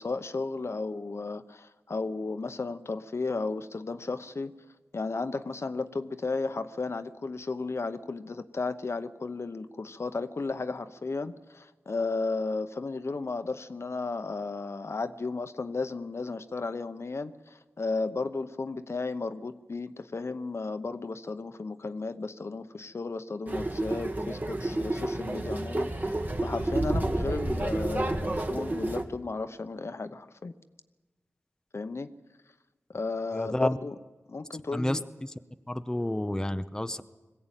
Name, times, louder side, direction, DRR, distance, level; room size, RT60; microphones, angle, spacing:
voice 1, 0.0-4.5 4.9-30.5 31.7-32.1 32.9-33.9 34.3-35.0, left 3 dB, 60° left, 10 dB, 0.9 m, -34 dB
sound 1, 23.5-29.0, right 2 dB, 35° right, 1.9 m, -30 dB
voice 2, 33.3-33.8 34.7-35.3 35.7-37.0, left 1 dB, 10° left, 9 dB, 0.7 m, -30 dB
21.0 x 15.5 x 9.0 m, 1.2 s
wide cardioid pair, 65°, 5 cm